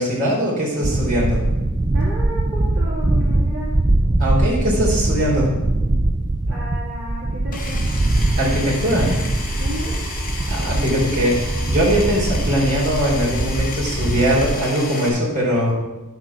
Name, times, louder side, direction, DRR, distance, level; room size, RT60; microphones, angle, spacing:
voice 1, 0.0-1.4 4.2-5.5 8.4-9.1 10.5-15.7, equal, 35° right, -6 dB, 3.6 m, -20 dB
sound 1, 0.8-14.6, right 2 dB, 20° right, 0.3 m, -22 dB
voice 2, 1.9-3.9 6.5-7.8 9.5-10.0, right 1 dB, 50° right, -8 dB, 3.0 m, -33 dB
Power tool, 7.5-15.1, left 3 dB, 40° left, 1.8 m, -32 dB
9.7 x 6.5 x 5.9 m, 1.1 s
head